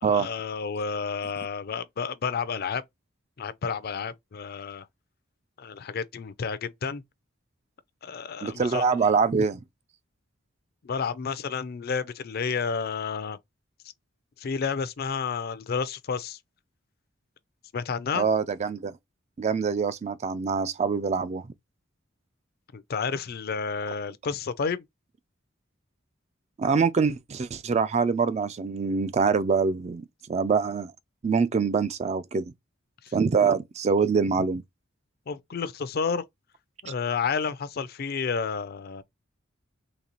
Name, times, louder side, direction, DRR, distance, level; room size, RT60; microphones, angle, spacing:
voice 1, 0.0-2.8 3.4-4.9 5.6-7.0 8.0-9.2 10.8-13.4 14.4-16.4 17.7-18.3 22.7-24.8 33.0-33.1 35.3-36.2 36.8-39.0, left 5 dB, 50° left, 0.4 m, -31 dB
voice 2, 8.4-9.6 18.1-19.0 19.4-21.5 26.6-30.9 31.2-32.5 33.1-34.6, right 5 dB, 35° right, 0.3 m, -24 dB
4.0 x 3.1 x 3.0 m
head